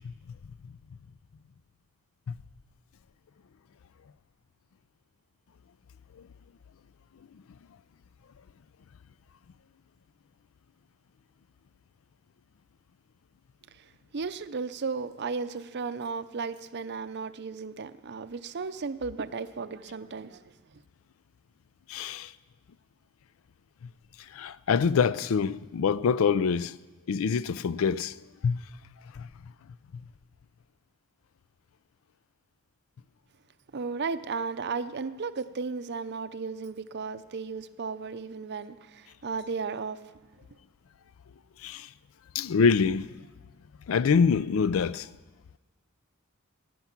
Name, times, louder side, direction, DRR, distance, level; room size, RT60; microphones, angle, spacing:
voice 1, 14.1-20.4 20.7-20.8 33.7-40.0, right 4 dB, 50° right, 0.6 m, -35 dB
voice 2, 21.9-22.3 24.4-26.7 27.1-28.1 28.4-28.6 41.6-41.9 42.3-43.1 43.9-45.1, left 6 dB, 65° left, 0.4 m, -25 dB
18.5 x 9.4 x 5.9 m
head